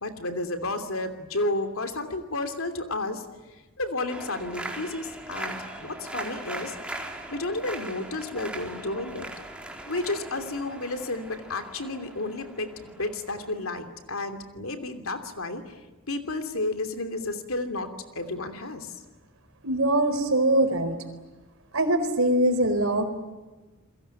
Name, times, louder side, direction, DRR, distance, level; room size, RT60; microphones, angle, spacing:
voice 1, 0.0-3.2 3.8-6.8 7.3-9.3 9.9-15.8 16.1-17.9 18.1-19.0, left 2 dB, 70° left, 7 dB, 3.0 m, -32 dB
sound 1, 4.1-13.8, right 1 dB, 5° right, 4.1 m, -40 dB
voice 2, 19.6-21.0 21.7-23.1, right 1 dB, 70° right, 8 dB, 4.3 m, -22 dB
29.0 x 22.0 x 9.2 m, 1.2 s
head